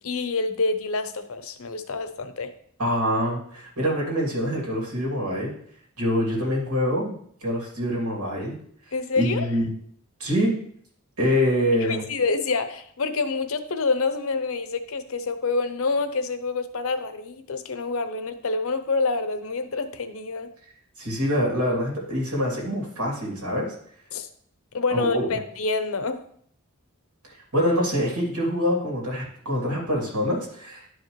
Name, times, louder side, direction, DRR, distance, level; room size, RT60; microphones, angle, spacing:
voice 1, 0.0-2.5 8.9-9.5 11.8-20.5 24.1-24.3 24.7-26.2, left 4 dB, 65° left, 10 dB, 0.7 m, -27 dB
voice 2, 2.8-5.5 6.0-7.2 7.4-8.6 9.2-9.7 10.2-10.5 11.2-12.0 21.0-23.7 24.9-25.4 27.5-31.0, equal, 90° right, -3 dB, 2.7 m, -25 dB
11.0 x 4.9 x 3.1 m, 0.63 s
head